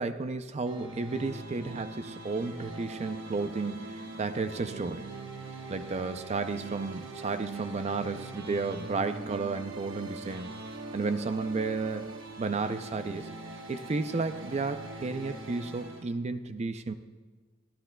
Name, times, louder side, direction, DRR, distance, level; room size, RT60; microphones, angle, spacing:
voice 1, 0.0-5.1 5.7-10.5 10.9-12.1 12.4-13.3 13.7-16.9, right 3 dB, 30° right, 10 dB, 0.4 m, -32 dB
sound 1, 0.6-16.0, right 2 dB, 70° right, 1.2 m, -42 dB
25.0 x 11.5 x 2.2 m, 1.4 s
head